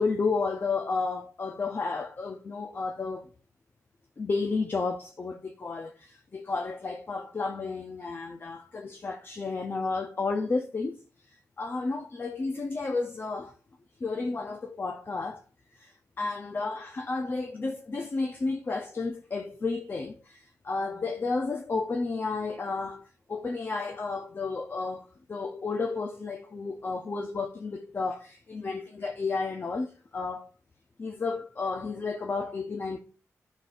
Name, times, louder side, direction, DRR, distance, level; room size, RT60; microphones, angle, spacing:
voice 1, 0.0-3.3 4.2-11.0 11.3-13.5 14.0-15.4 15.8-30.5 31.0-33.0, left 4 dB, 40° left, 0.7 m, -32 dB
11.5 x 6.1 x 2.6 m
wide cardioid pair, 125°, 6 cm